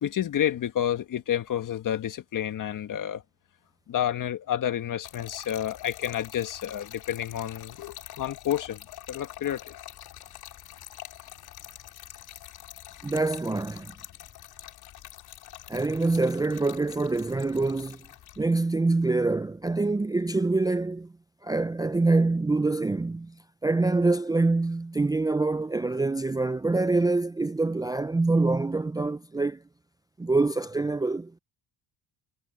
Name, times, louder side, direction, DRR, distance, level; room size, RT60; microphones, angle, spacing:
voice 1, 0.0-3.2 3.9-8.8 9.1-9.6, left 10 dB, 50° left, 1.8 m, -29 dB
Trickle dribble / Fill (with liquid), 5.0-18.5, left 13 dB, 65° left, 3.9 m, -46 dB
voice 2, 13.0-13.9 15.7-18.0 18.4-21.1 21.4-23.3 23.6-29.6 30.2-31.3, right 3 dB, 10° right, 0.5 m, -25 dB
cardioid pair, 95°, 39 cm